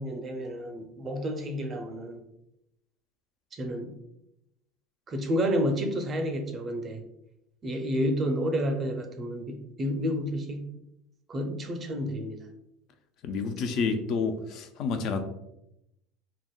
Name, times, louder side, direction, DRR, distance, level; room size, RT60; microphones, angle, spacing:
voice 1, 0.0-2.2 3.5-3.9 5.1-7.0 7.6-10.7 11.3-12.4, equal, 35° right, 4 dB, 0.5 m, -30 dB
voice 2, 13.2-15.2, left 4 dB, 55° left, 7 dB, 0.4 m, -29 dB
3.4 x 2.0 x 2.3 m, 0.83 s
hypercardioid pair, 80°, 0 cm